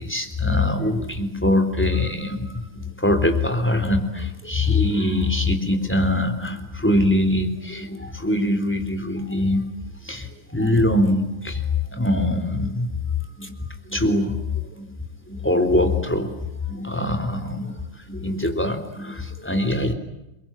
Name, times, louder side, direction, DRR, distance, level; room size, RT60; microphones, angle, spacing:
voice 1, 0.0-12.9 13.4-14.9 15.3-19.9, left 1 dB, 10° left, 6 dB, 3.5 m, -23 dB
29.0 x 23.0 x 8.9 m, 0.91 s
omnidirectional pair, 1.4 m